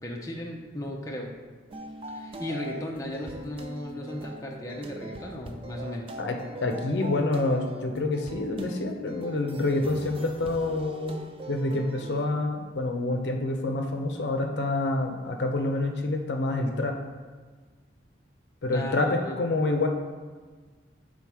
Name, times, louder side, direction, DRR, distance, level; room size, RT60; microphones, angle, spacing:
voice 1, 0.0-1.4 2.1-6.2 18.7-19.4, left 1 dB, 20° left, -1 dB, 0.6 m, -36 dB
sound 1, 1.7-12.3, right 1 dB, 30° right, 0.4 m, -41 dB
voice 2, 6.6-17.0 18.6-19.9, left 2 dB, 70° left, 3 dB, 0.6 m, -27 dB
5.6 x 3.8 x 4.8 m, 1.4 s
head